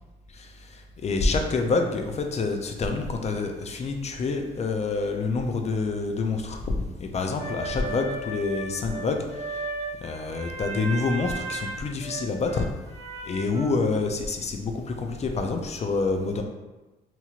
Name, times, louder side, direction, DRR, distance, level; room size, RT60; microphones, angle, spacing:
voice 1, 1.0-9.2 10.0-12.7 13.3-16.4, left 3 dB, 35° left, 4 dB, 0.4 m, -27 dB
sound 1, 7.4-13.7, right 3 dB, 55° right, 1.0 m, -35 dB
2.9 x 2.8 x 2.4 m, 1.1 s
cardioid pair, 90°, 20 cm